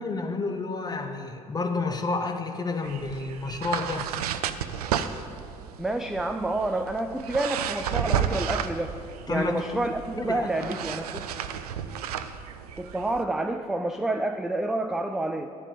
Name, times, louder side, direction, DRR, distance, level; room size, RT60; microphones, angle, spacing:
voice 1, 0.0-4.1 9.3-9.6 10.2-10.8, left 3 dB, 20° left, 5 dB, 0.9 m, -30 dB
sound 1, 2.8-13.2, right 8 dB, 75° right, 0.4 m, -32 dB
voice 2, 5.8-9.0 9.3-11.2 12.8-15.5, right 2 dB, 5° right, 7 dB, 0.3 m, -28 dB
10.0 x 4.9 x 6.7 m, 2.4 s
figure-of-eight pair, 55°, 20 cm